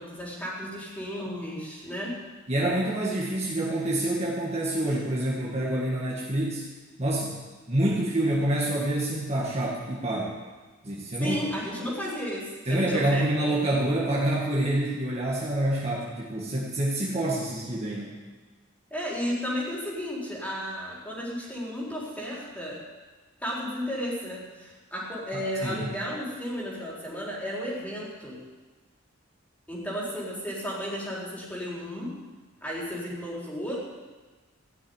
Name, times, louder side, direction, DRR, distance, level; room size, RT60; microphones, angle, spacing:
voice 1, 0.0-2.2 11.2-13.5 18.9-22.8 23.4-28.4 29.7-32.1 32.6-33.8, equal, 10° left, -6 dB, 3.8 m, -33 dB
voice 2, 2.5-6.6 7.0-7.4 7.7-10.3 10.8-11.4 12.7-18.2 25.3-25.9, right 1 dB, 30° right, -4 dB, 1.8 m, -27 dB
15.0 x 6.3 x 9.6 m, 1.3 s
head